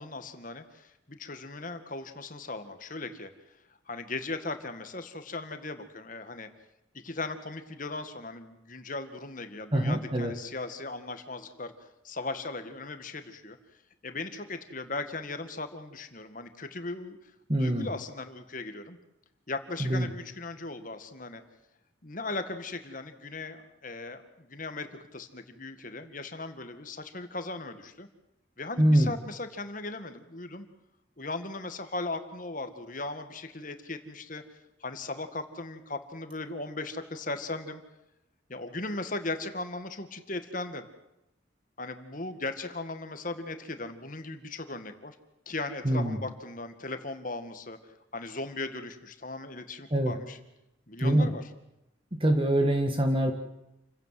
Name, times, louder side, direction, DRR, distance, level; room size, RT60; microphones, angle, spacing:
voice 1, 0.0-3.3 3.9-6.5 7.0-13.6 14.0-17.3 17.6-19.0 19.5-21.4 22.0-28.1 28.6-30.7 31.2-34.4 34.8-37.8 38.5-40.9 41.8-45.2 45.5-50.4 50.9-51.5, left 2 dB, 40° left, 8 dB, 2.0 m, -38 dB
voice 2, 9.7-10.4 17.5-17.9 19.8-20.1 28.8-29.1 45.8-46.2 49.9-50.2 51.0-51.3 52.1-53.3, right 1 dB, 25° right, 5 dB, 1.7 m, -24 dB
28.5 x 16.0 x 7.8 m, 0.90 s
head